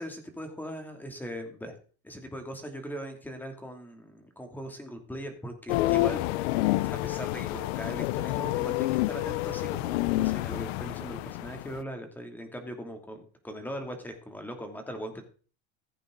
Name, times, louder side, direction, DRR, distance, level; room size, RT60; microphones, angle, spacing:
voice 1, 0.0-1.7 2.0-6.5 6.8-15.2, equal, 5° left, 5 dB, 2.7 m, -40 dB
sound 1, 5.7-11.8, left 18 dB, 85° left, 0.6 m, -28 dB
15.5 x 8.2 x 3.9 m, 0.40 s
supercardioid pair, 125°, 31 cm